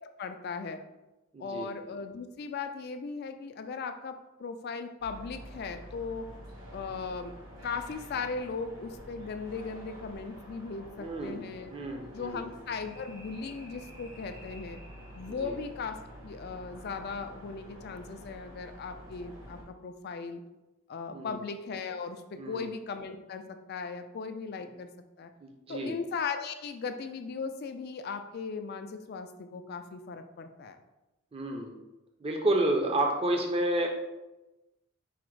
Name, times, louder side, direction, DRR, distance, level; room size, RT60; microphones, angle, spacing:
voice 1, 0.0-0.8 1.4-6.3 6.7-7.3 7.6-11.7 12.1-14.8 15.2-16.0 16.2-20.4 20.9-24.9 25.2-25.3 25.7-30.8, left 5 dB, 45° left, 8 dB, 0.3 m, -38 dB
voice 2, 1.3-1.7 11.0-11.4 11.7-12.4 15.3-15.5 21.1-21.4 22.4-22.7 25.4-26.0 31.3-31.7 32.2-33.9, right 1 dB, 25° right, 2 dB, 0.5 m, -30 dB
sound 1, 5.0-19.6, equal, 75° right, 1.5 m, -48 dB
4.8 x 2.1 x 4.5 m, 1.0 s
head